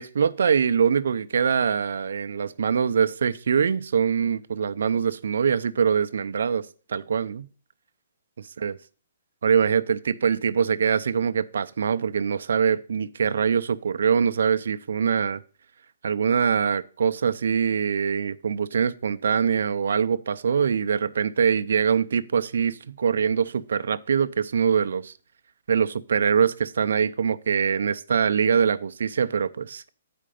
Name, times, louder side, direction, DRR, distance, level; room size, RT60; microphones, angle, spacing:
voice 1, 0.0-7.5 8.4-8.8 9.4-15.4 16.0-25.1 25.7-29.8, right 7 dB, 75° right, 0.5 m, -23 dB
8.5 x 5.1 x 5.0 m
hypercardioid pair, 170°, 0 cm